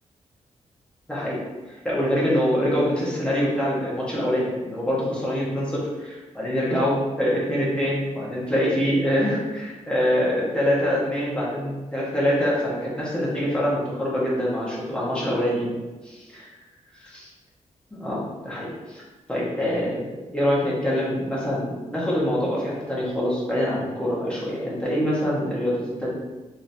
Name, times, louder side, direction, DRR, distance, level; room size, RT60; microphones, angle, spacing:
voice 1, 1.6-15.7 16.0-16.5 16.9-17.3 18.0-19.0 19.3-26.1, equal, 10° left, -7 dB, 1.4 m, -25 dB
3.9 x 3.4 x 2.7 m, 1.2 s
wide cardioid pair, 120°, 13 cm